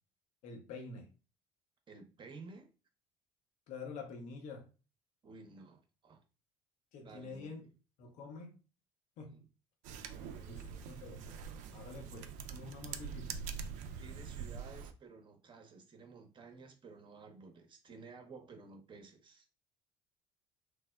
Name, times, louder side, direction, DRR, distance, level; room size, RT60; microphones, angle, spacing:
voice 1, 0.4-1.1 3.7-4.7 6.9-7.6 8.0-8.6 9.2-9.4 10.5-11.3 11.7-13.4, left 4 dB, 60° left, 0.7 m, -47 dB
voice 2, 1.9-2.7 5.2-6.2 7.0-7.7 9.2-9.4 10.0-10.8 14.0-19.5, right 4 dB, 35° right, 0.7 m, -54 dB
sound 1, 9.8-14.9, right 6 dB, 60° right, 0.4 m, -44 dB
3.1 x 2.0 x 2.2 m
hypercardioid pair, 60°, 14 cm